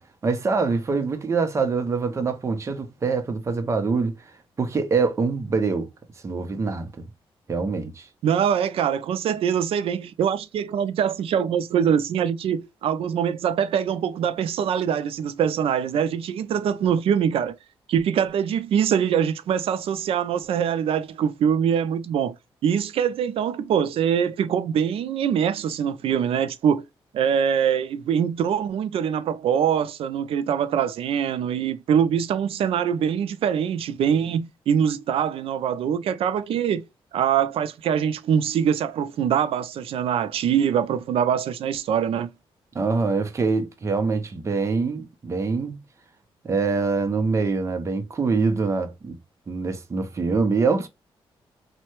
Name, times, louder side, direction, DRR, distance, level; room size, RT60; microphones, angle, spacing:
voice 1, 0.2-4.2 4.6-5.9 6.2-7.1 7.5-8.1 42.7-45.8 46.4-49.2 49.5-50.9, right 4 dB, 30° right, 0.6 m, -24 dB
voice 2, 8.2-17.5 17.9-22.3 22.6-26.8 27.1-36.8 37.1-42.3, right 8 dB, 75° right, 0.4 m, -23 dB
3.2 x 2.1 x 2.9 m
wide cardioid pair, 140°, 10 cm